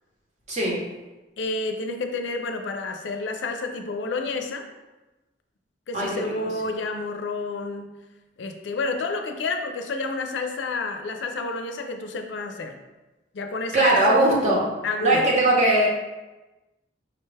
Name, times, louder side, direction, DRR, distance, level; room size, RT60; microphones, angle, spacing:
voice 1, 1.4-4.6 5.9-8.0 8.4-12.8 13.3-14.0 14.8-15.2, left 3 dB, 85° left, 5 dB, 0.4 m, -30 dB
voice 2, 13.7-14.6 15.0-15.9, right 1 dB, 40° right, -3 dB, 0.9 m, -19 dB
5.0 x 2.2 x 3.3 m, 1.1 s
head